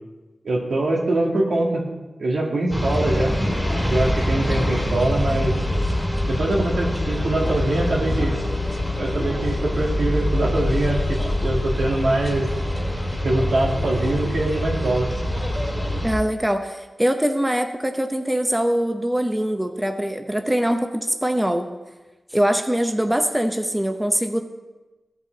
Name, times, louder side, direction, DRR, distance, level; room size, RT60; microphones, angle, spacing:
voice 1, 0.4-1.8 2.2-3.4 3.8-5.5 6.3-8.3 9.0-12.5 13.2-15.1, right 2 dB, 80° right, -2 dB, 1.9 m, -23 dB
sound 1, 2.7-16.1, left 1 dB, 5° left, 1.8 m, -24 dB
voice 2, 16.0-21.6 22.3-24.4, equal, 10° right, 6 dB, 0.7 m, -22 dB
14.5 x 5.5 x 3.9 m, 1.2 s
wide cardioid pair, 70°, 0 cm